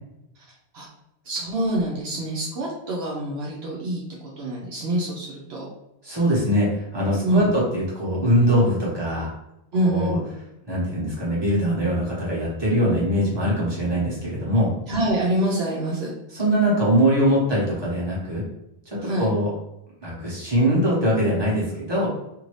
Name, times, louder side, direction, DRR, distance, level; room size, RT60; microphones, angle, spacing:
voice 1, 0.4-0.9 1.2-4.0 4.4-5.7 7.2-7.5 9.7-10.2 14.9-16.1 19.0-19.3, right 1 dB, 75° right, -4 dB, 0.9 m, -26 dB
voice 2, 6.0-9.3 9.8-10.2 10.7-14.7 16.3-18.4 18.9-19.5 20.0-22.1, equal, 25° right, -7 dB, 1.2 m, -22 dB
2.7 x 2.6 x 3.1 m, 0.85 s
omnidirectional pair, 1.1 m